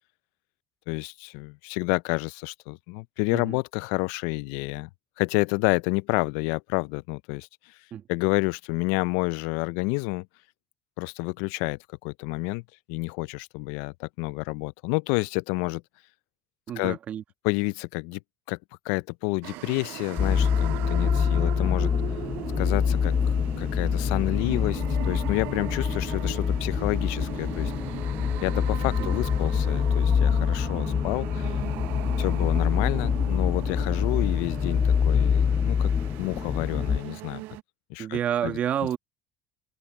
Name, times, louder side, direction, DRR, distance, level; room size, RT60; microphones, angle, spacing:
voice 1, 0.9-4.9 5.2-7.5 8.1-10.3 11.0-12.6 12.9-15.8 16.8-17.0 17.4-18.2 18.5-18.6 18.9-21.9 22.6-27.7 28.4-31.5 32.2-35.9 36.2-37.4 37.9-38.6, left 26 dB, 80° left, 0.4 m, -29 dB
voice 2, 16.7-17.2 29.0-29.2 38.0-39.0, right 9 dB, 50° right, 1.3 m, -29 dB
sound 1, 19.4-37.6, right 21 dB, 70° right, 0.4 m, -39 dB
sound 2, 20.2-37.0, left 7 dB, 35° left, 0.6 m, -25 dB
supercardioid pair, 100°, 3 cm